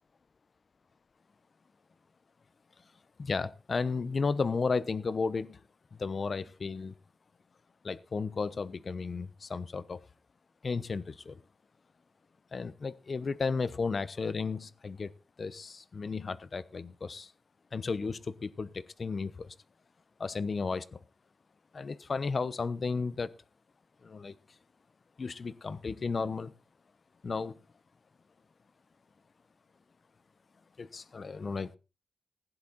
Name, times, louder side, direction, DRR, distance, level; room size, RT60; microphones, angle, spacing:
voice 1, 3.2-5.6 5.9-6.9 7.8-10.0 10.6-11.4 12.5-15.1 15.4-17.3 17.7-19.5 20.2-21.0 21.7-23.3 24.0-24.3 25.2-26.5 27.2-27.6 30.8-31.7, left 4 dB, 50° left, 0.9 m, -34 dB
16.0 x 10.5 x 4.2 m
wide cardioid pair, 100°, 0 cm